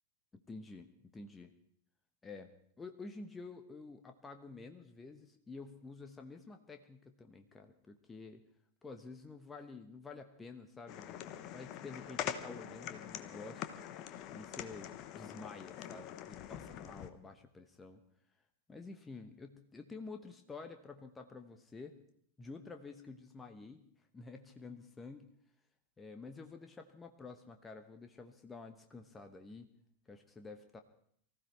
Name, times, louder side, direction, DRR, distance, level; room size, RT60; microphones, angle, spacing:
voice 1, 0.3-1.5 2.2-2.5 2.8-8.4 8.8-13.7 14.3-18.0 18.7-22.0 22.4-23.8 24.1-25.3 26.0-29.7 30.1-30.8, left 3 dB, 15° left, 6 dB, 1.0 m, -50 dB
sound 1, 10.9-17.1, left 10 dB, 40° left, 1.0 m, -44 dB
24.0 x 15.0 x 3.3 m, 0.64 s
figure-of-eight pair, 90°, 0 cm